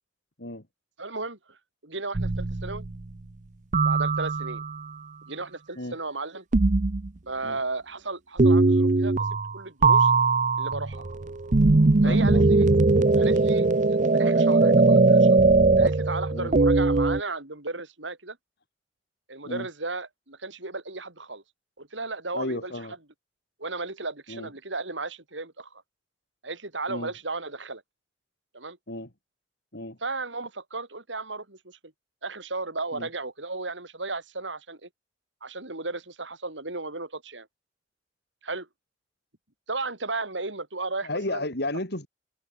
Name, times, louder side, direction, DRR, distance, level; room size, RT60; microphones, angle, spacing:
voice 1, 1.0-1.6 1.8-2.9 3.9-4.6 5.3-6.4 7.3-9.3 9.5-10.1 10.6-11.1 12.0-12.7 13.2-15.4 15.8-18.4 19.3-21.4 21.8-22.7 23.6-25.8 26.4-27.8 28.5-28.8 30.0-31.8 32.2-34.9 35.4-37.5 38.4-38.7 39.7-41.4, right 3 dB, 85° right, 5.6 m, -34 dB
sound 1, 2.1-3.0 3.7-4.8 6.5-7.1 8.4-9.5 9.8-17.2, right 3 dB, 45° right, 0.7 m, -20 dB
voice 2, 12.0-12.5 12.9-13.1 16.3-16.5 19.5-19.7 22.3-22.9 24.3-24.5 26.9-27.1 28.9-29.1 29.7-30.0 32.9-33.1 41.0-42.1, left 1 dB, 60° left, 5.6 m, -33 dB
open air
head